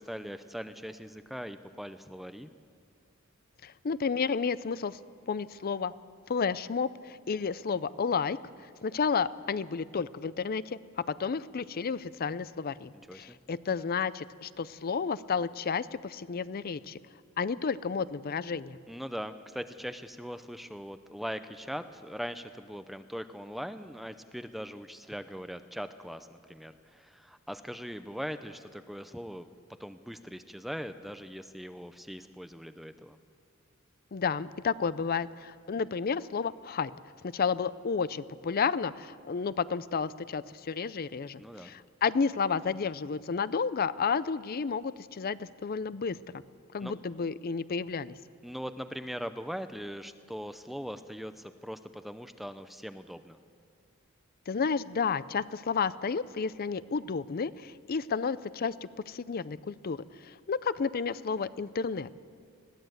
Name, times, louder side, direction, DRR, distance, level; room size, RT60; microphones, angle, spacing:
voice 1, 0.0-2.5 13.1-13.4 18.9-29.5 29.8-33.2 41.4-41.7 46.8-46.9 48.4-53.4, equal, ahead, 10 dB, 0.5 m, -40 dB
voice 2, 3.6-5.0 5.3-5.9 6.3-8.4 8.8-17.0 17.4-18.8 34.1-36.9 37.2-46.4 46.7-48.2 54.5-62.1, left 5 dB, 45° left, 17 dB, 0.5 m, -31 dB
21.0 x 16.0 x 8.0 m, 2.2 s
head